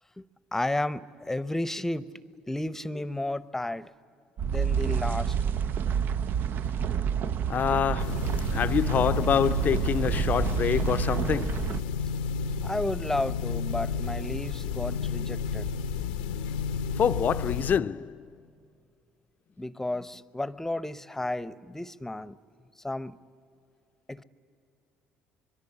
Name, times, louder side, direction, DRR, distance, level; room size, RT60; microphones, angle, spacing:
voice 1, 0.5-2.1 2.5-3.9 4.4-5.3 7.2-7.4 12.6-15.7 19.6-22.4 22.8-23.2 24.1-24.2, left 1 dB, 10° left, 0.8 m, -32 dB
sound 1, 4.4-11.8, right 8 dB, 55° right, 0.5 m, -29 dB
voice 2, 7.5-11.8 17.0-18.2, left 8 dB, 45° left, 0.6 m, -26 dB
sound 2, 8.0-17.8, left 5 dB, 80° left, 0.7 m, -32 dB
24.5 x 23.0 x 10.0 m
hypercardioid pair, 60°, 4 cm